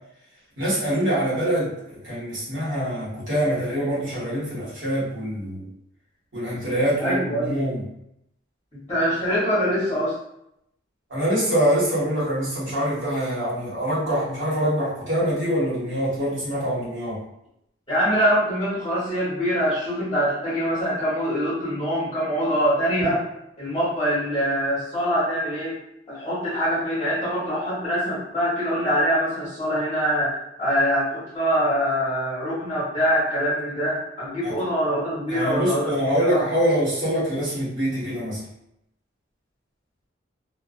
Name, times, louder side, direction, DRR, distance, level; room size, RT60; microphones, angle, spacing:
voice 1, 0.6-5.7 6.3-7.8 11.1-17.2 34.4-34.5 35.3-38.4, equal, 65° right, -8 dB, 1.3 m, -24 dB
voice 2, 7.0-7.5 8.9-10.1 17.9-23.2 23.6-25.8 26.1-36.4, equal, 20° left, -10 dB, 0.9 m, -24 dB
2.3 x 2.2 x 2.4 m, 0.79 s
head